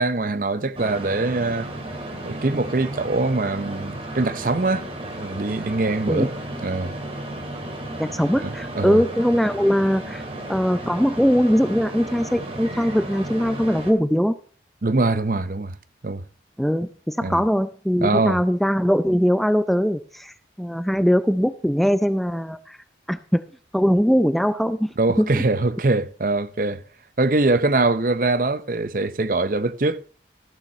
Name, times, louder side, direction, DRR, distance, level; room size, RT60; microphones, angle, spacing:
voice 1, 0.0-1.7 2.2-6.3 6.6-6.9 8.4-8.5 8.7-9.0 14.8-15.7 16.0-16.2 17.2-17.4 18.0-18.4 25.0-26.8 27.2-30.0, right 2 dB, 50° right, 0.7 m, -23 dB
sound 1, 0.7-13.9, right 1 dB, 35° right, 2.3 m, -34 dB
voice 2, 8.0-10.2 10.5-14.3 16.6-22.8 23.1-23.4 23.7-24.9 25.2-25.3, equal, ahead, 0.4 m, -21 dB
14.0 x 7.3 x 5.5 m
head